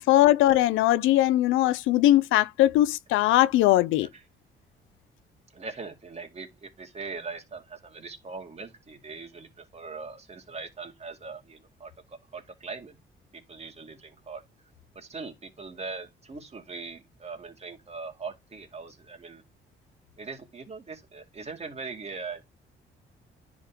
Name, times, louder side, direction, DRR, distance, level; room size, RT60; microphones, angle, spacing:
voice 1, 0.0-4.1, left 14 dB, 90° left, 0.4 m, -20 dB
voice 2, 5.5-13.0 13.3-14.4 14.9-19.4 20.2-22.4, right 4 dB, 30° right, 2.3 m, -41 dB
10.5 x 3.8 x 2.9 m
cardioid pair, 90°, 20 cm